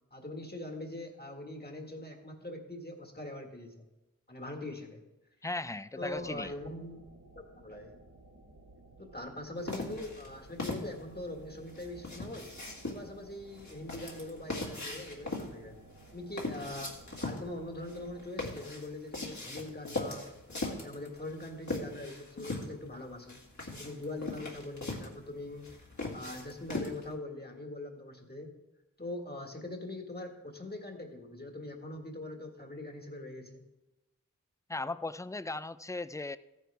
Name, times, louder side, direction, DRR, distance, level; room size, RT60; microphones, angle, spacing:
voice 1, 0.1-3.9 4.3-5.0 6.0-7.1 7.6-8.0 9.0-12.5 12.9-15.8 16.1-20.3 20.6-23.4 23.7-25.7 26.1-28.5 29.0-33.6, left 1 dB, 30° left, 3 dB, 1.7 m, -42 dB
voice 2, 5.4-6.5 34.7-36.4, left 2 dB, 10° left, 15 dB, 0.3 m, -37 dB
sound 1, 6.0-18.3, right 2 dB, 65° right, 1.2 m, -56 dB
sound 2, 9.7-27.1, left 2 dB, 60° left, 2.1 m, -40 dB
14.5 x 9.3 x 3.4 m, 1.0 s
wide cardioid pair, 40°, 33 cm